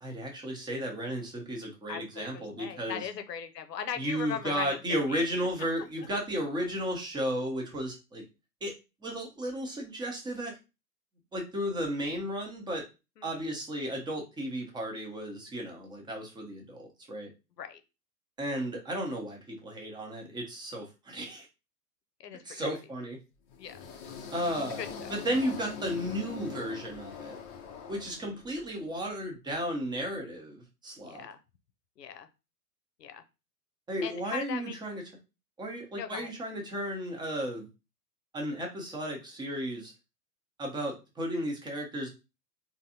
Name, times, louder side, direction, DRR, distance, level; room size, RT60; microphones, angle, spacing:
voice 1, 0.0-3.0 4.0-8.2 8.6-8.7 9.0-10.6 11.3-12.8 13.2-17.3 18.4-21.5 22.4-23.2 24.3-24.8 25.1-27.4 27.9-31.3 33.9-35.0 35.6-37.7 38.3-39.9 40.6-42.1, equal, 10° right, 1 dB, 0.7 m, -34 dB
voice 2, 1.9-4.8 5.1-5.3 13.2-13.3 17.6-17.8 22.2-22.6 23.6-23.9 24.8-25.2 28.0-28.3 31.0-31.4 32.0-32.3 33.0-33.2 34.0-34.7 35.9-36.3, left 8 dB, 75° left, 9 dB, 0.7 m, -39 dB
sound 1, 23.5-28.7, left 6 dB, 25° left, 0.5 m, -42 dB
3.8 x 2.7 x 2.8 m, 0.28 s
figure-of-eight pair, 105°, 49 cm